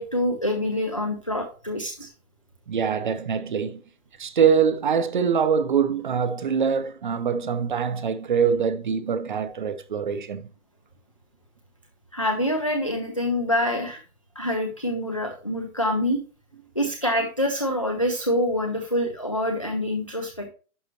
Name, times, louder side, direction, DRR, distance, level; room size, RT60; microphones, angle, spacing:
voice 1, 0.0-2.1 12.1-14.0 14.4-16.2 16.8-20.5, left 1 dB, 25° left, 0.4 m, -26 dB
voice 2, 2.7-3.8 4.2-10.5, right 7 dB, 35° right, 0.6 m, -24 dB
11.0 x 5.5 x 3.0 m
hypercardioid pair, 180°, 42 cm